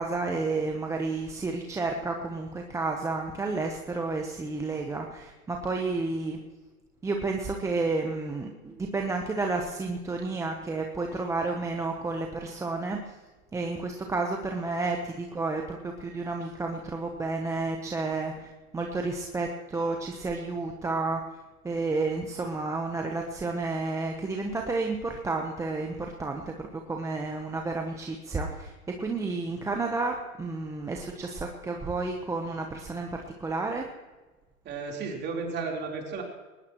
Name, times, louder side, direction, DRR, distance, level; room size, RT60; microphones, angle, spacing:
voice 1, 0.0-6.4 7.0-13.0 13.5-21.2 21.6-33.9, right 3 dB, 5° right, 2 dB, 0.9 m, -31 dB
voice 2, 34.6-36.2, right 4 dB, 25° right, 0 dB, 3.8 m, -33 dB
21.5 x 19.5 x 3.1 m, 1.2 s
hypercardioid pair, 130°, 45 cm